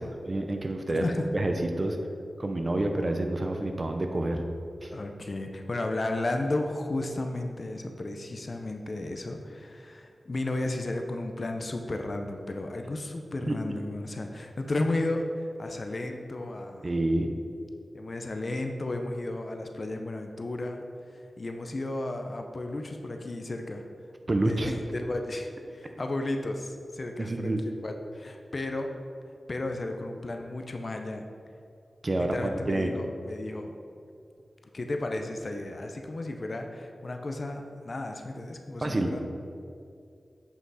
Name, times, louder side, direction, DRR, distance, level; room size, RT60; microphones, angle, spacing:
voice 1, 0.0-1.0 1.3-2.0 2.4-4.4 4.8-4.9 16.8-17.3 24.3-24.7 27.2-27.6 32.0-32.9 38.8-39.1, right 2 dB, 40° right, 5 dB, 0.8 m, -28 dB
voice 2, 0.9-1.3 4.9-16.9 17.9-20.8 21.1-23.8 24.4-28.9 29.5-31.3 32.1-33.7 34.7-39.2, left 2 dB, 55° left, 4 dB, 0.7 m, -33 dB
7.9 x 5.8 x 4.1 m, 2.4 s
cardioid pair, 55°, 0 cm